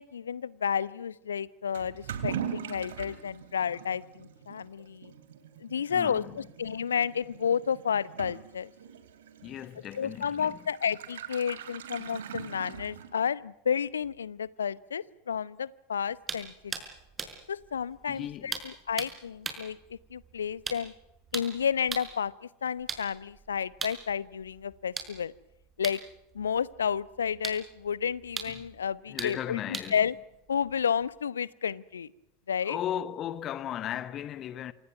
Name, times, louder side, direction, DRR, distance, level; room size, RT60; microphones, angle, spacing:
voice 1, 0.0-5.1 5.6-8.7 10.0-16.7 17.5-20.9 21.3-22.3 22.6-25.3 25.8-26.0 26.3-29.6 29.9-30.1 30.5-32.1 32.5-32.8, left 7 dB, 75° left, 0.8 m, -31 dB
Toilet flush / Liquid, 1.7-13.4, right 9 dB, 65° right, 2.9 m, -42 dB
voice 2, 5.9-6.4 9.4-10.6 18.1-18.6 28.6-28.7 29.1-30.1 32.6-34.7, left 10 dB, 35° left, 1.4 m, -36 dB
sound 1, 16.2-22.2 22.7-31.2, right 5 dB, 20° right, 5.4 m, -42 dB
28.0 x 26.0 x 6.1 m
figure-of-eight pair, 85°, 0 cm